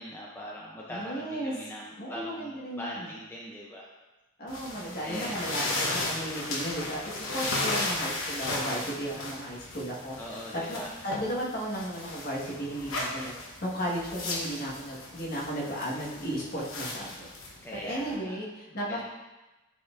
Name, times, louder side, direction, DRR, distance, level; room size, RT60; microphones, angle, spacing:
voice 1, 0.0-3.9 5.0-5.4 10.2-10.9 17.6-18.4 18.7-19.0, equal, 10° left, -4 dB, 0.5 m, -41 dB
voice 2, 0.9-1.5 2.0-3.1 4.4-10.2 10.5-13.3 13.6-17.6 17.8-19.0, equal, 45° left, -5 dB, 1.5 m, -35 dB
sound 1, 4.5-18.1, left 2 dB, 80° left, 1.0 m, -35 dB
9.6 x 4.2 x 2.5 m, 1.1 s
head